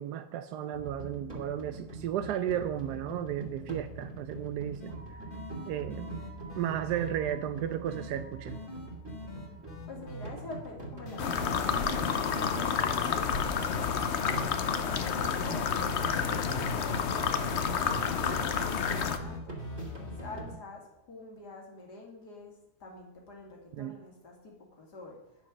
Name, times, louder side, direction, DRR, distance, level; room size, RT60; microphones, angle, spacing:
voice 1, 0.0-5.3 5.7-6.2 6.6-8.6 23.7-24.0, right 10 dB, 80° right, 9 dB, 1.1 m, -34 dB
sound 1, 0.7-20.6, right 2 dB, 15° right, 2.1 m, -43 dB
sound 2, 4.8-4.9 5.3-7.1 7.9-8.1 8.5-10.3 11.1-11.3 11.6-13.6 14.2-14.4 14.8-16.7 17.4-20.4, left 2 dB, 30° left, 1.7 m, -45 dB
voice 2, 9.9-12.6 13.1-13.4 13.7-14.6 15.1-19.6 20.2-22.5 22.8-25.5, left 3 dB, 75° left, 0 dB, 2.9 m, -47 dB
sound 3, 11.2-19.2, left 6 dB, 55° left, 0.9 m, -30 dB
9.9 x 6.8 x 6.2 m, 0.89 s
omnidirectional pair, 1.8 m